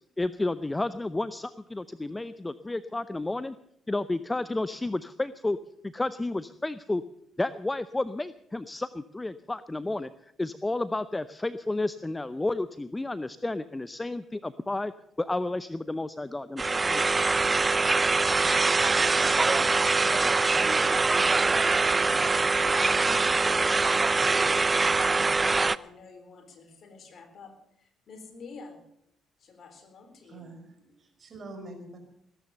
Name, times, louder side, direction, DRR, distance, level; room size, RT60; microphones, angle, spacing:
voice 1, 0.2-3.6 3.9-5.6 5.8-7.0 7.4-14.9 15.2-17.2, left 2 dB, 20° left, 15 dB, 0.6 m, -31 dB
sound 1, 16.6-25.8, right 3 dB, 30° right, 0.5 m, -23 dB
voice 2, 20.3-21.4 22.3-28.8 29.4-30.5, left 4 dB, 55° left, 6 dB, 3.9 m, -49 dB
voice 3, 30.2-32.0, right 2 dB, 45° right, 5 dB, 4.9 m, -45 dB
19.5 x 10.5 x 6.6 m, 0.73 s
hypercardioid pair, 45°, 0 cm